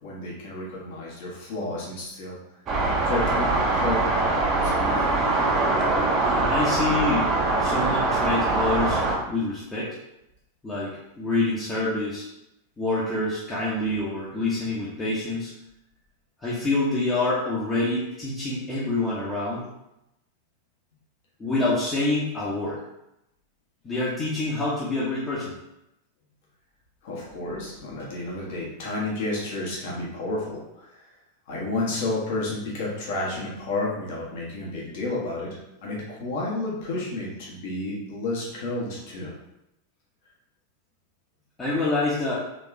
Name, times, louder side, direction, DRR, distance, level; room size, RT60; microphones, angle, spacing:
voice 1, 0.0-2.4 3.0-5.1 27.0-31.0 31.5-39.3, left 2 dB, 50° left, -4 dB, 1.5 m, -31 dB
sound 1, 2.7-9.2, right 2 dB, 30° right, 0.9 m, -23 dB
voice 2, 6.4-7.3 7.6-9.9 10.6-12.3 12.8-15.5 16.4-19.7 21.4-22.8 23.8-25.6 41.6-42.3, left 2 dB, 15° left, -8 dB, 1.1 m, -26 dB
4.0 x 3.5 x 3.5 m, 0.87 s
figure-of-eight pair, 90°, 0 cm